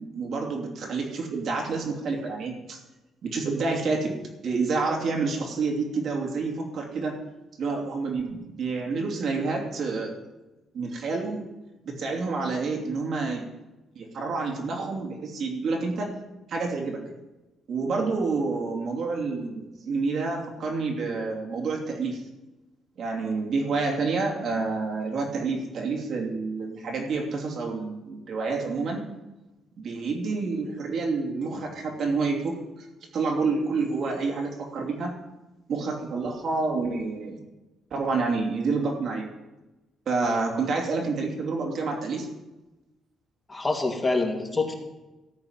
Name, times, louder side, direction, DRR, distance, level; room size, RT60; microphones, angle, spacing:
voice 1, 0.0-2.8 3.2-4.1 4.4-7.1 7.6-10.2 10.7-11.4 11.8-13.5 13.9-16.1 16.5-17.0 17.7-22.2 23.0-29.0 29.8-32.9 33.1-35.1 35.7-37.4 37.9-39.3 40.1-42.3, right 4 dB, 65° right, 0 dB, 2.9 m, -28 dB
voice 2, 43.5-44.7, left 3 dB, 25° left, 0 dB, 2.5 m, -26 dB
14.0 x 4.9 x 8.9 m, 1.0 s
cardioid pair, 90°, 0 cm